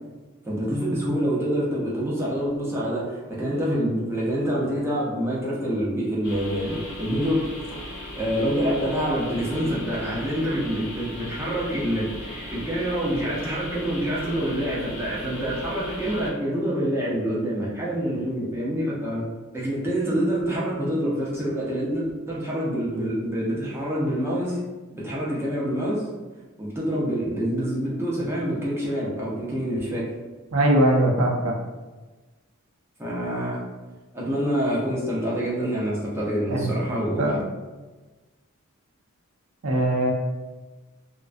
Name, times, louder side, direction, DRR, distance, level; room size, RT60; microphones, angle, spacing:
voice 1, 0.4-7.4 7.9-19.2 19.5-24.6 24.9-26.1 26.6-30.1 33.0-33.6 34.1-37.4, equal, 10° right, -6 dB, 0.5 m, -26 dB
sound 1, 6.2-16.3, left 1 dB, 50° left, 0.8 m, -37 dB
voice 2, 30.5-31.5 36.5-36.7 37.2-37.4 39.6-40.1, right 1 dB, 75° right, 0 dB, 0.5 m, -20 dB
2.3 x 2.2 x 2.4 m, 1.2 s
head